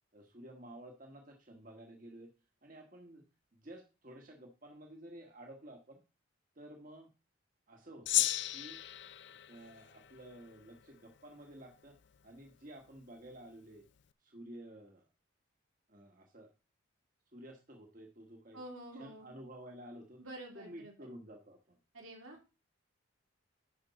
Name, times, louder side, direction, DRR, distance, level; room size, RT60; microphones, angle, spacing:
voice 1, 0.1-2.3 2.6-3.2 3.5-6.0 6.5-7.1 7.7-8.8 9.5-12.0 12.2-13.9 14.2-15.1 15.9-16.5 17.3-18.6 18.9-20.2 20.5-21.8, right 1 dB, 40° right, 1 dB, 1.3 m, -52 dB
Gong, 8.1-10.7, left 14 dB, 55° left, 0.4 m, -35 dB
voice 2, 18.5-19.3 20.2-20.9 21.9-22.4, right 1 dB, 80° right, 0 dB, 3.1 m, -48 dB
11.0 x 5.2 x 4.1 m, 0.31 s
head